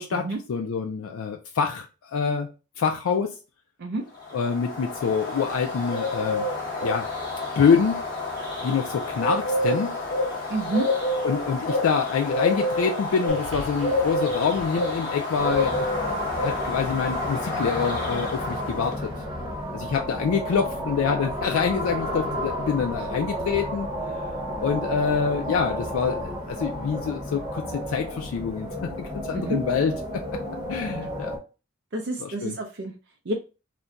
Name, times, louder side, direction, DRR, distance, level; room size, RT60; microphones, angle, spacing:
voice 1, 0.0-2.5 2.8-3.4 4.3-6.5 6.8-7.1 7.6-8.0 8.6-9.9 11.2-15.8 16.2-19.1 19.7-23.9 24.1-24.2 24.6-30.2 30.7-31.3 32.2-32.6, left 6 dB, 85° left, 3 dB, 0.4 m, -26 dB
Bird, 4.3-19.0, left 2 dB, 20° left, 1.0 m, -28 dB
voice 2, 10.5-10.9 29.3-29.6 31.9-32.9 33.3-33.4, right 2 dB, 55° right, 2 dB, 0.5 m, -28 dB
sound 1, 13.3-17.8 18.7-18.8, equal, 70° right, 0.9 m, -44 dB
sound 2, 15.4-31.4, equal, 20° right, 0.9 m, -32 dB
2.4 x 2.2 x 3.8 m, 0.32 s
head